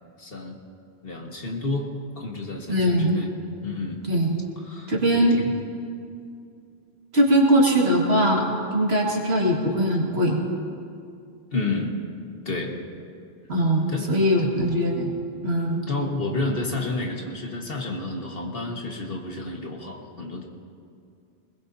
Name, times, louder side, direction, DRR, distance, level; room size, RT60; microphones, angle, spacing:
voice 1, 0.2-0.6 1.0-1.9 2.2-3.3 3.6-4.0 4.6-5.6 11.5-12.0 12.5-12.7 13.9-14.1 14.4-14.6 15.9-20.5, left 3 dB, 60° left, 1 dB, 1.9 m, -30 dB
voice 2, 2.7-3.1 4.1-4.4 4.9-5.4 7.1-8.4 8.7-10.4 13.5-15.1 15.4-15.9, equal, 75° right, -2 dB, 2.5 m, -21 dB
21.0 x 20.5 x 2.8 m, 2.4 s
omnidirectional pair, 1.1 m